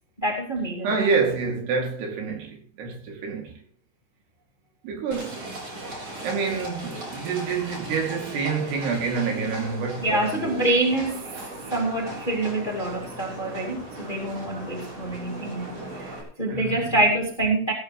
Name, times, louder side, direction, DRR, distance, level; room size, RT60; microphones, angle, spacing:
voice 1, 0.2-0.9 10.0-11.3 11.7-17.7, right 2 dB, 20° left, 1.6 m, -26 dB
voice 2, 0.8-3.5 4.8-5.4 6.2-11.0 16.4-16.9, right 5 dB, 75° right, 4.8 m, -28 dB
Livestock farm animals working animals, 5.1-16.2, right 1 dB, 35° right, 4.7 m, -38 dB
16.0 x 13.0 x 3.2 m
omnidirectional pair, 4.8 m